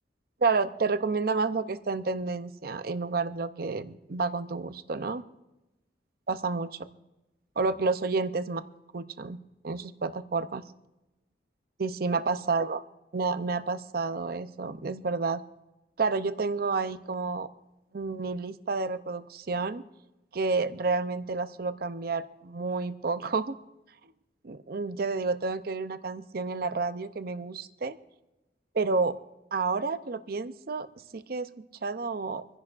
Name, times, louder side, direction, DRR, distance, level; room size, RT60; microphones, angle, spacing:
voice 1, 0.4-5.2 6.3-6.7 7.6-8.6 8.9-9.4 9.6-10.6 11.8-12.8 13.1-15.4 16.0-17.5 17.9-19.8 20.3-23.6 24.4-28.0 28.7-29.2 29.5-30.9 31.1-32.4, right 4 dB, 55° right, 12 dB, 0.6 m, -30 dB
26.5 x 10.5 x 2.5 m, 0.99 s
head